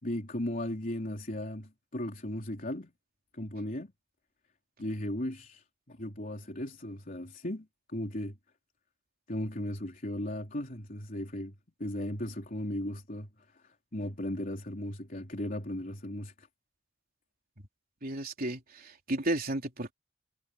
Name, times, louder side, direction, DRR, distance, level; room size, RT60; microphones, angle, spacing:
voice 1, 0.0-2.9 3.3-3.9 4.8-7.7 7.9-8.4 9.3-16.5, left 1 dB, 45° left, 3.7 m, -36 dB
voice 2, 18.0-19.9, right 1 dB, 45° right, 3.7 m, -33 dB
head